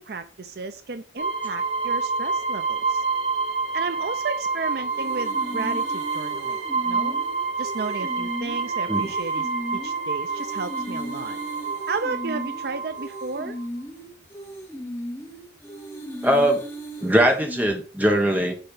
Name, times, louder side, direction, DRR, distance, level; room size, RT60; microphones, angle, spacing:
voice 1, 0.0-3.0 3.7-6.6 6.8-7.2 7.6-11.4 11.9-13.6, right 4 dB, 55° right, 10 dB, 0.5 m, -33 dB
sound 1, 1.2-13.6, right 4 dB, 70° right, 1.0 m, -28 dB
sound 2, 4.9-17.7, equal, 15° left, 2.4 m, -36 dB
voice 2, 16.2-16.6 17.0-18.5, equal, 10° right, 3 dB, 1.3 m, -20 dB
6.9 x 4.4 x 5.5 m, 0.36 s
head